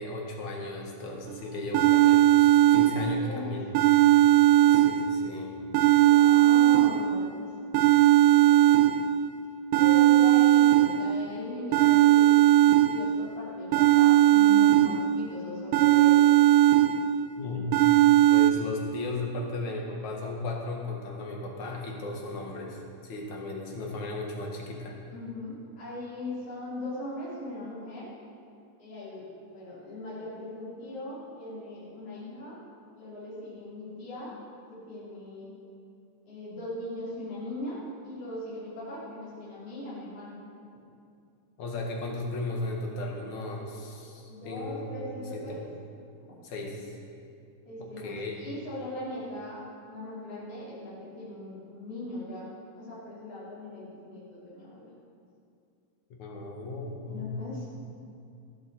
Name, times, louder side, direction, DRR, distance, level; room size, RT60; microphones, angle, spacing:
voice 1, 0.0-3.7 4.7-5.5 17.4-17.7 18.3-24.9 41.6-45.6 46.4-46.9 47.8-48.4 56.1-57.3, left 2 dB, 80° left, 0 dB, 3.1 m, -36 dB
sound 1, 1.3-1.4 1.7-3.3 3.7-5.3 5.7-7.3 7.7-9.3 9.7-11.3 11.7-13.3 13.7-15.3 15.7-17.3 17.7-18.5, right 13 dB, 75° right, 1.5 m, -19 dB
voice 2, 2.6-3.5 4.5-4.8 6.0-7.5 8.3-8.7 9.7-16.2 25.1-28.1 28.8-29.2 29.5-32.6 33.0-34.3 34.7-35.5 36.3-40.3 44.3-45.6 46.2-46.3 47.7-49.6 49.9-54.9 57.1-57.8, left 2 dB, 55° left, -10 dB, 4.3 m, -39 dB
14.5 x 8.3 x 6.9 m, 2.5 s
omnidirectional pair, 3.3 m